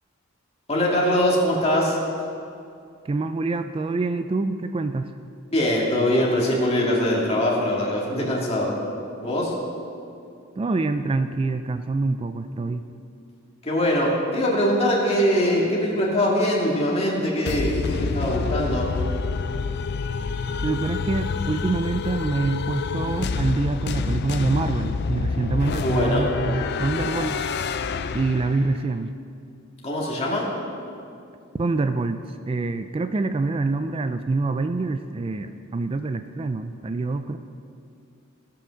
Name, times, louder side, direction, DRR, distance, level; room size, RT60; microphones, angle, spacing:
voice 1, 0.7-2.0 5.5-8.8 9.2-9.5 13.6-18.9 25.8-26.3 29.8-30.5, equal, 30° left, -4 dB, 2.1 m, -22 dB
voice 2, 3.0-5.1 10.6-12.8 20.6-27.4 28.1-29.1 31.5-37.4, right 3 dB, 25° right, 9 dB, 0.3 m, -26 dB
sound 1, 17.5-28.9, left 4 dB, 50° left, 0.4 m, -28 dB
16.0 x 5.7 x 6.3 m, 2.5 s
head